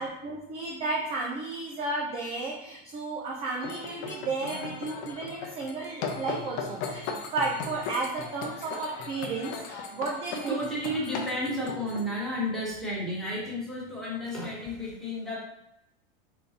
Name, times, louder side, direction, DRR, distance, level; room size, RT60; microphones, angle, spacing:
voice 1, 0.0-10.7, right 3 dB, 20° right, -2 dB, 0.4 m, -33 dB
sound 1, 3.6-12.0, left 5 dB, 40° left, 0.6 m, -37 dB
voice 2, 10.3-15.5, equal, ahead, -7 dB, 1.3 m, -32 dB
3.9 x 3.7 x 2.8 m, 0.83 s
supercardioid pair, 145°, 31 cm